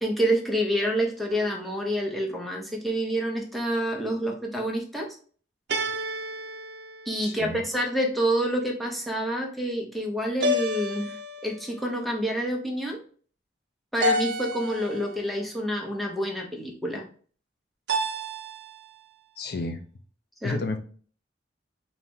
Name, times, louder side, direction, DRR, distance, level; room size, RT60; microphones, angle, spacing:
voice 1, 0.0-5.1 7.1-11.2 11.4-13.0 13.9-17.0 20.4-20.6, right 1 dB, ahead, -1 dB, 0.8 m, -28 dB
sound 1, 1.3-2.0 5.7-7.7 10.4-11.8 14.0-15.2 17.9-18.9, equal, 70° right, 0.6 m, -30 dB
voice 2, 7.2-7.6 19.4-19.8 20.4-20.8, left 2 dB, 60° left, 6 dB, 0.5 m, -31 dB
4.0 x 2.8 x 3.5 m, 0.44 s
head